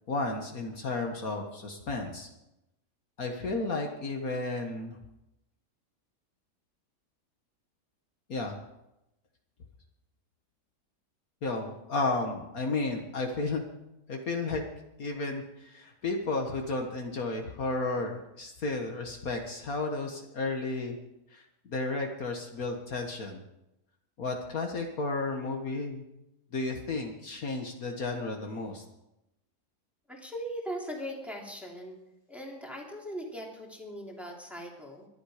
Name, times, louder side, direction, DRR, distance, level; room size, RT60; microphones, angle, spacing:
voice 1, 0.1-2.3 3.2-5.0 8.3-8.6 11.4-13.6 14.1-14.6 15.0-21.0 21.3-23.4 24.2-26.0 26.5-28.8, left 3 dB, 60° left, 3 dB, 1.9 m, -33 dB
voice 2, 30.1-32.0 32.3-35.1, equal, ahead, -2 dB, 3.0 m, -39 dB
22.0 x 11.5 x 5.0 m, 0.90 s
omnidirectional pair, 1.7 m